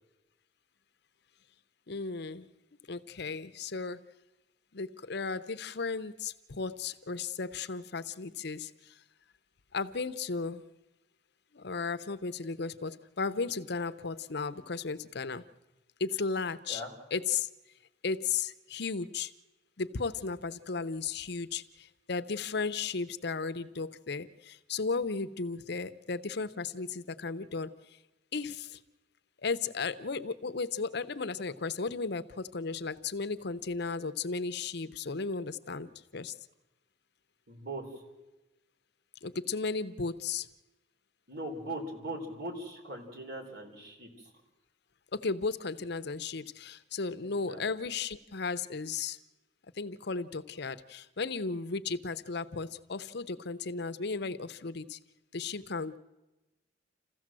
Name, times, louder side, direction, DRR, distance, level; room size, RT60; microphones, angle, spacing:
voice 1, 1.9-2.5 2.9-4.0 4.7-9.0 9.7-10.6 11.5-15.4 16.0-16.8 17.1-17.5 18.0-19.3 19.8-28.0 28.3-28.8 29.4-36.3 39.2-40.5 45.1-49.2 49.7-55.0 55.3-56.0, left 4 dB, 60° left, 12 dB, 0.8 m, -35 dB
voice 2, 37.5-37.9 41.3-44.3 47.3-47.6, right 1 dB, 60° right, 3 dB, 4.4 m, -40 dB
28.0 x 15.0 x 7.6 m, 1.1 s
head